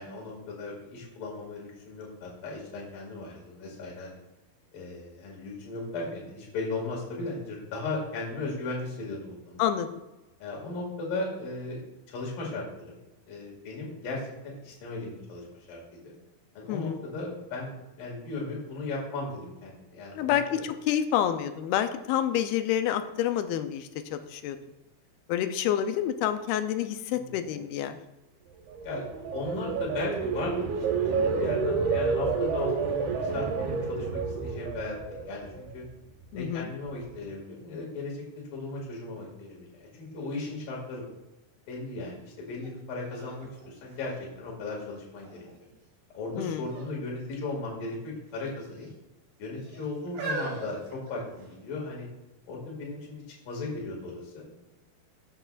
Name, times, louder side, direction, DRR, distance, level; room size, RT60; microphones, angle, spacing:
voice 1, 0.0-4.2 4.7-9.6 10.4-11.8 12.1-13.0 13.3-16.1 16.6-20.6 27.1-27.4 28.8-35.8 36.3-38.3 38.5-41.0 41.7-45.5 46.1-48.9 49.4-52.1 52.5-54.6, left 2 dB, 65° left, -3 dB, 3.9 m, -37 dB
voice 2, 16.7-17.0 20.1-24.6 25.3-28.0 36.3-36.7 46.3-46.7, left 10 dB, 85° left, 9 dB, 2.5 m, -28 dB
sound 1, 28.7-35.8 36.2-36.6, right 5 dB, 85° right, 3.2 m, -29 dB
sound 2, 42.6-42.7 43.1-44.7 45.3-45.8 46.6-47.0 47.2-47.4 48.3-48.9 49.6-51.7 52.4-52.5, right 3 dB, 60° right, 3.9 m, -39 dB
14.5 x 7.8 x 2.5 m, 0.99 s
omnidirectional pair, 4.4 m